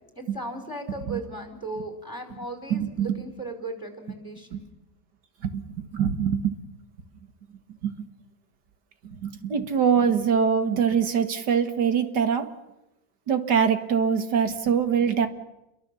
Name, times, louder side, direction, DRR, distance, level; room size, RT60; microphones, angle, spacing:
voice 1, 0.1-4.6, right 2 dB, 10° left, 5 dB, 4.6 m, -36 dB
voice 2, 2.7-3.2 4.5-4.6 5.4-6.6 7.8-8.0 9.0-12.6 13.3-15.3, right 7 dB, 90° right, 8 dB, 2.3 m, -24 dB
29.5 x 23.0 x 7.0 m, 0.93 s
omnidirectional pair, 1.8 m